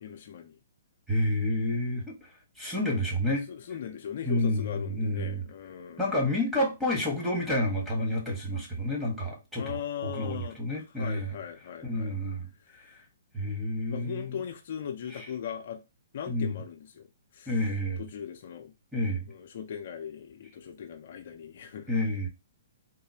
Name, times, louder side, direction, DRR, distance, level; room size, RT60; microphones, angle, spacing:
voice 1, 0.0-0.6 3.5-6.1 9.6-12.2 12.7-13.0 13.9-15.8 16.1-17.1 17.3-17.5 18.0-18.7 19.3-21.9, left 8 dB, 55° left, 0.5 m, -39 dB
voice 2, 1.1-2.3 2.6-3.4 4.2-5.4 6.0-11.4 11.8-12.5 13.3-14.4 15.1-15.3 16.3-16.5 17.5-18.0 18.9-19.3 21.9-22.3, left 1 dB, 5° right, 1.4 m, -29 dB
3.9 x 2.7 x 2.8 m
hypercardioid pair, 135°, 0 cm